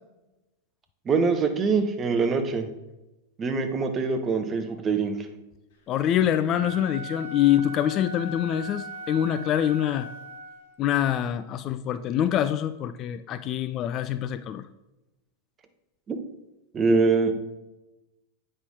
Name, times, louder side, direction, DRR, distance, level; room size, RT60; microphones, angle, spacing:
voice 1, 1.1-2.7 3.4-5.1 16.1-16.2 16.7-17.3, right 4 dB, 25° right, 7 dB, 0.9 m, -23 dB
voice 2, 5.9-10.1 10.8-14.6, left 10 dB, 35° left, 12 dB, 0.3 m, -25 dB
Wind instrument woodwind instrument, 6.5-10.8, right 1 dB, 50° left, 1.3 m, -39 dB
8.1 x 5.4 x 3.6 m, 0.99 s
figure-of-eight pair, 90°, 0 cm